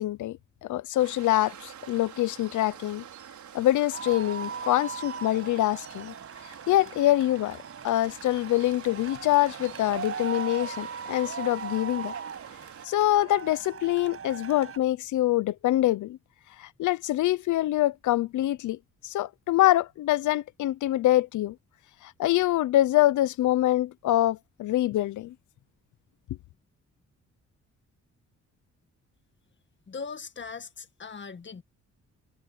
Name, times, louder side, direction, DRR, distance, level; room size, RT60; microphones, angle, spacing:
voice 1, 0.0-3.0 3.5-6.1 6.7-7.6 7.8-12.1 12.8-16.2 16.6-18.8 19.0-21.5 22.0-25.3, left 15 dB, 90° left, 0.6 m, -25 dB
Waves surf, 1.0-12.9, right 9 dB, 75° right, 5.6 m, -46 dB
sound 1, 3.9-14.8, right 6 dB, 50° right, 7.7 m, -39 dB
voice 2, 29.9-31.6, left 5 dB, 40° left, 1.8 m, -39 dB
cardioid pair, 105°, 29 cm